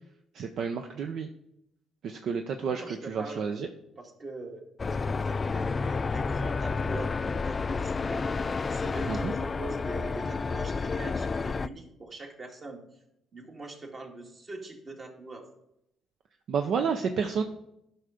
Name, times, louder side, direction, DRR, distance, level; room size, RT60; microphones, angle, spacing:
voice 1, 0.3-1.3 2.0-3.7 9.1-9.3 16.5-17.4, right 6 dB, 65° right, 6 dB, 0.6 m, -30 dB
voice 2, 2.6-3.4 4.0-13.0 13.3-15.5, right 2 dB, 40° right, 2 dB, 2.1 m, -43 dB
sound 1, 4.8-11.7, left 4 dB, 35° left, 0.3 m, -30 dB
11.0 x 5.7 x 5.1 m, 0.82 s
supercardioid pair, 65°, 0 cm